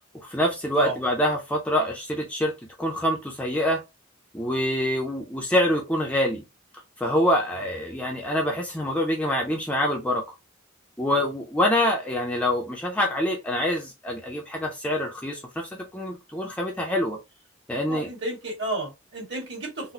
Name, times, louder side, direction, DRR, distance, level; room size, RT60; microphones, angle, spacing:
voice 1, 0.2-2.5 2.8-3.8 4.3-6.4 7.0-10.2 11.0-17.2 17.7-18.1, left 1 dB, 5° left, 0.5 m, -25 dB
voice 2, 17.8-19.9, right 2 dB, 55° right, 2.0 m, -33 dB
4.0 x 2.1 x 2.8 m
head